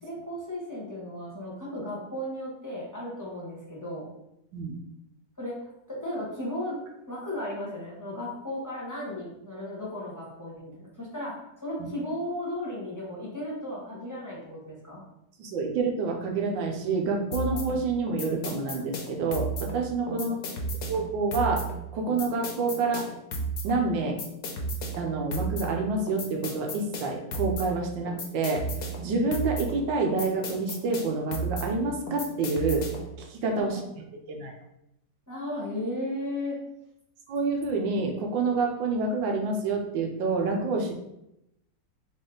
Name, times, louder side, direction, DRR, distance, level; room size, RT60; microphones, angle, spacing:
voice 1, 0.0-4.1 5.4-15.0 20.1-20.5 33.5-33.8 35.3-36.6, left 1 dB, 10° left, -7 dB, 1.1 m, -35 dB
voice 2, 15.4-20.3 20.9-21.6 21.9-23.1 23.6-24.2 25.0-28.6 29.0-32.9 33.3-33.8 34.3-34.5 37.3-40.9, right 3 dB, 80° right, 2 dB, 1.5 m, -28 dB
sound 1, 17.3-33.2, right 2 dB, 60° left, 1.1 m, -34 dB
4.3 x 3.1 x 3.8 m, 0.85 s
omnidirectional pair, 2.0 m